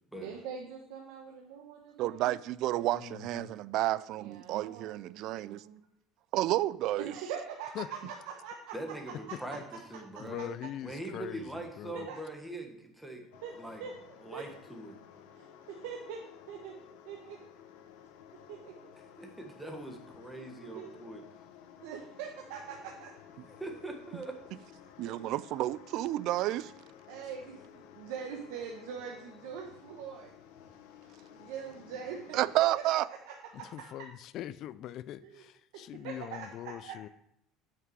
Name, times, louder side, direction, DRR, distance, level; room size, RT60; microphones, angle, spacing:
voice 1, 0.1-2.2 4.2-5.8 7.0-8.7 11.9-12.2 13.4-13.5 13.8-13.9 14.3-14.4 15.3-16.2 16.5-16.7 17.0-17.5 18.5-18.9 20.6-20.9 21.8-23.1 27.1-30.3 31.3-32.4 32.9-33.0 33.3-34.1 35.2-35.4 35.7-36.9, right 7 dB, 90° right, 1.1 m, -43 dB
voice 2, 2.0-5.6 6.3-7.1 25.0-26.7 32.3-33.1, right 15 dB, 60° right, 0.3 m, -30 dB
voice 3, 2.9-3.5 7.8-7.9 9.3-9.6 10.2-12.1 33.5-37.1, left 12 dB, 55° left, 0.4 m, -42 dB
voice 4, 8.7-9.6 9.9-10.5 10.8-13.3 13.6-13.8 14.2-15.0 19.2-21.2 23.5-24.4, right 1 dB, 5° right, 1.5 m, -42 dB
sound 1, 13.3-32.6, left 8 dB, 85° left, 0.8 m, -54 dB
9.5 x 5.9 x 4.8 m
cardioid pair, 130°, 0 cm